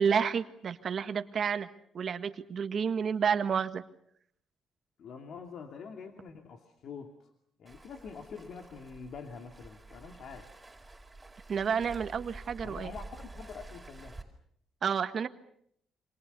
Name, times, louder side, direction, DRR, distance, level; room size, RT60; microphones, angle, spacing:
voice 1, 0.0-1.7 1.9-3.8 11.5-12.9 14.8-15.3, right 6 dB, 50° right, 10 dB, 1.6 m, -30 dB
voice 2, 5.0-7.3 7.6-10.5 12.6-14.2, left 5 dB, 65° left, 4 dB, 2.6 m, -45 dB
Waves surf, 7.7-14.2, right 2 dB, 15° right, 4.9 m, -49 dB
28.0 x 25.5 x 6.8 m, 0.71 s
cardioid pair, 90°, 0 cm